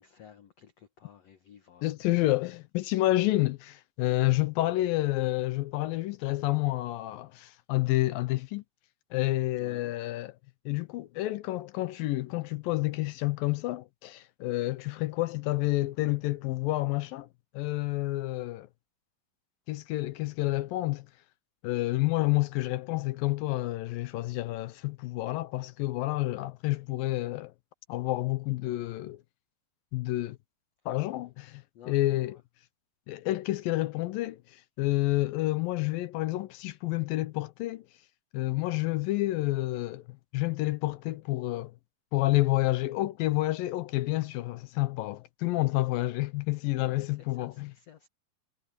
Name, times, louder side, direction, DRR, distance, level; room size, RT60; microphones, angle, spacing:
voice 1, 0.0-1.9 9.6-9.9 28.6-28.9 31.7-32.4 46.7-48.1, left 9 dB, 60° left, 1.8 m, -53 dB
voice 2, 1.8-8.6 9.1-10.3 10.7-17.3 17.5-18.7 19.7-21.1 21.6-27.5 27.9-29.2 29.9-30.4 30.9-32.4 33.1-37.9 38.3-41.7 42.1-47.7, left 18 dB, 75° left, 2.3 m, -29 dB
omnidirectional pair, 4.5 m